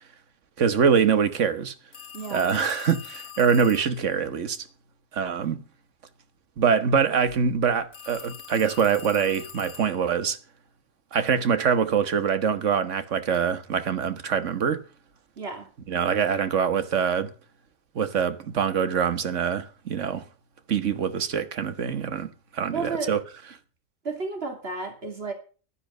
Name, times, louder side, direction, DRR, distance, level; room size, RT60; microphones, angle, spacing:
voice 1, 0.6-1.7 2.3-4.7 5.1-5.6 6.6-10.4 11.1-14.8 15.9-17.3 17.9-20.3 20.7-23.2, right 7 dB, 65° right, 1.5 m, -24 dB
sound 1, 1.9-4.0 7.9-10.1, left 7 dB, 55° left, 1.4 m, -43 dB
voice 2, 2.1-2.5 15.4-15.7 22.7-23.2 24.0-25.3, right 4 dB, 45° right, 3.0 m, -32 dB
12.0 x 9.9 x 6.5 m
omnidirectional pair, 1.4 m